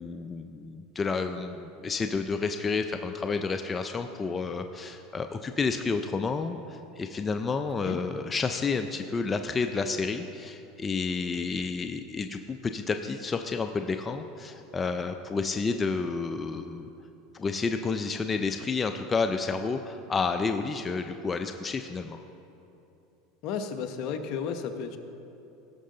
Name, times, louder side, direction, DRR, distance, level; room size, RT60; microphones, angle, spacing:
voice 1, 0.0-16.9 17.3-22.2, left 4 dB, 25° left, 7 dB, 0.4 m, -30 dB
voice 2, 23.4-25.0, left 6 dB, 60° left, 7 dB, 0.9 m, -33 dB
17.0 x 6.3 x 3.9 m, 2.9 s
supercardioid pair, 110°, 0 cm